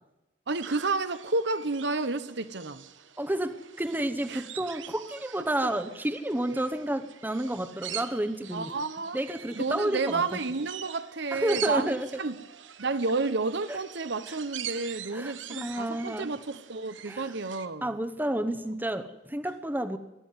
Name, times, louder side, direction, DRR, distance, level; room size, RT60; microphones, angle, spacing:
voice 1, 0.5-2.8 4.3-4.4 8.5-9.2 9.6-12.4 12.8-17.9, right 3 dB, 65° right, 1.0 m, -31 dB
sound 1, 0.6-17.7, right 10 dB, 90° right, 1.2 m, -44 dB
voice 2, 3.2-8.7 9.1-10.2 11.3-12.2 13.7-13.8 14.3-14.4 15.1-16.3 17.1-17.3 17.8-20.0, right 1 dB, 10° right, 1.0 m, -30 dB
20.5 x 13.0 x 9.6 m
head